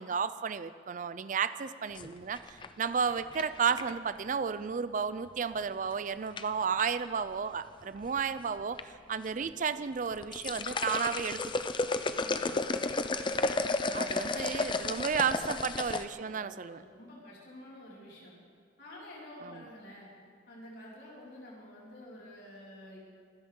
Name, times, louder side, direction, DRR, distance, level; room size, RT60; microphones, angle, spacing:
voice 1, 0.0-8.8 9.1-11.4 13.9-16.8, right 6 dB, 45° right, 13 dB, 0.4 m, -32 dB
sound 1, 1.9-4.1 5.6-5.9 6.4-6.8 7.7-8.3 8.6-8.8 9.3-9.4 10.0-16.0, left 3 dB, 25° left, 0.5 m, -33 dB
voice 2, 12.1-12.8 13.6-14.5 14.7-15.1 15.5-15.6 16.2-18.3 18.8-20.1 20.5-23.0, left 1 dB, 65° left, -6 dB, 5.4 m, -50 dB
25.0 x 13.0 x 3.8 m, 2.1 s
head